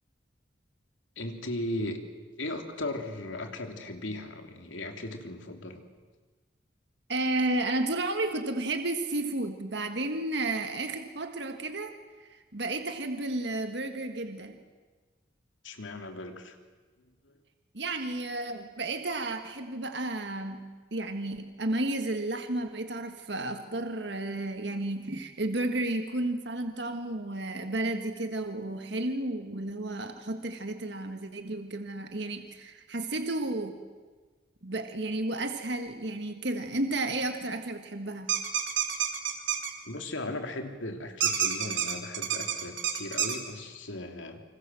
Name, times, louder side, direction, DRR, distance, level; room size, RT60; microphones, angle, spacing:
voice 1, 1.2-2.0 2.4-5.8 15.6-16.6 17.2-17.4 39.8-44.4, left 1 dB, 85° left, 5 dB, 3.2 m, -37 dB
voice 2, 7.1-14.6 17.7-20.6 20.9-33.8 34.6-38.3, right 2 dB, 65° right, 6 dB, 1.7 m, -32 dB
sound 1, 38.3-39.7 41.2-43.4, right 9 dB, 85° right, 3.3 m, -28 dB
29.0 x 25.5 x 7.7 m, 1.4 s
head